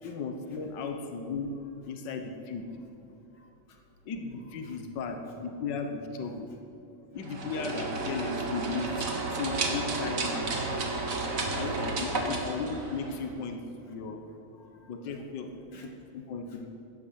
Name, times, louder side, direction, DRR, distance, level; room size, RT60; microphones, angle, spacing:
voice 1, 0.0-1.6 1.9-2.7 4.0-6.5 7.1-10.7 11.5-13.6 13.9-14.2 14.9-15.5 15.8-16.7, left 4 dB, 85° left, 5 dB, 0.9 m, -36 dB
sound 1, 7.2-13.4, right 3 dB, 45° right, 1.1 m, -32 dB
voice 2, 11.1-12.1 14.1-14.2 14.5-15.9 16.5-16.6, equal, 45° left, 2 dB, 2.2 m, -55 dB
17.0 x 13.0 x 5.8 m, 2.8 s
omnidirectional pair, 3.7 m